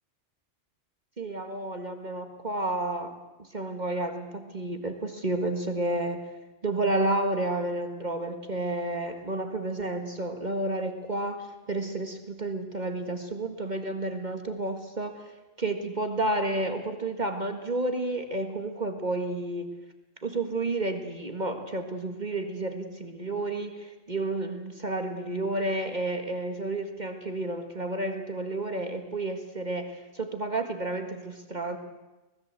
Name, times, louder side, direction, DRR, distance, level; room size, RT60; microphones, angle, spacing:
voice 1, 1.2-3.1 3.5-6.3 6.6-15.1 15.6-19.7 20.2-31.8, right 2 dB, 40° right, 6 dB, 1.9 m, -31 dB
25.5 x 20.0 x 8.3 m, 1.1 s
omnidirectional pair, 1.2 m